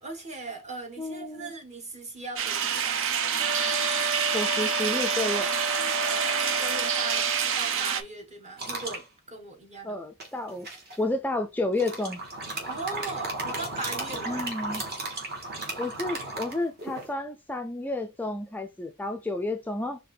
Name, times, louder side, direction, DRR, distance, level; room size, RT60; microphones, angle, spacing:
voice 1, 0.0-3.1 6.1-10.0 12.7-14.5 16.1-16.2, right 3 dB, 35° right, 1.5 m, -39 dB
voice 2, 1.0-1.5 4.3-5.5 9.8-10.7 11.0-12.2 14.3-14.8 15.8-20.0, left 2 dB, 10° left, 0.3 m, -31 dB
sound 1, 2.4-8.0, right 7 dB, 65° right, 0.6 m, -27 dB
sound 2, 3.4-7.5, equal, 80° right, 1.9 m, -33 dB
sound 3, 8.6-9.0 10.2-11.0 11.7-17.1, right 2 dB, 50° right, 1.9 m, -35 dB
4.9 x 2.8 x 3.3 m
head